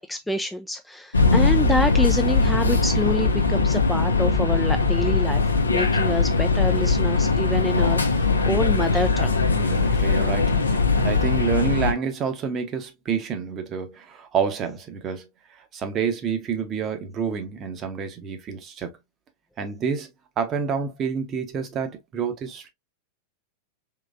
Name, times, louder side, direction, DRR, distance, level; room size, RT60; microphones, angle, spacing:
voice 1, 0.0-9.4, left 1 dB, 5° left, 0.3 m, -27 dB
sound 1, 1.1-11.9, left 3 dB, 75° left, 0.6 m, -20 dB
voice 2, 9.6-15.3 15.7-18.9 19.6-22.7, right 6 dB, 30° right, 0.9 m, -28 dB
3.8 x 3.1 x 2.5 m
figure-of-eight pair, 90°, 0 cm